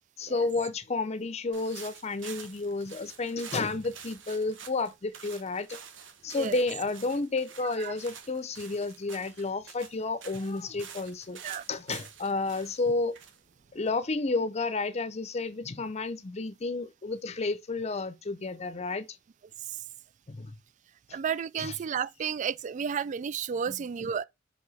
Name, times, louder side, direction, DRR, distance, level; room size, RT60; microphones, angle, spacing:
voice 1, 0.2-5.8 6.2-11.4 11.7-13.2 13.7-19.1 20.3-20.5 21.6-21.8 23.7-23.8, left 3 dB, 35° left, 0.6 m, -31 dB
sound 1, 1.5-14.3, right 7 dB, 80° right, 1.3 m, -48 dB
voice 2, 21.1-24.2, right 7 dB, 40° right, 0.3 m, -32 dB
5.4 x 4.8 x 4.1 m
head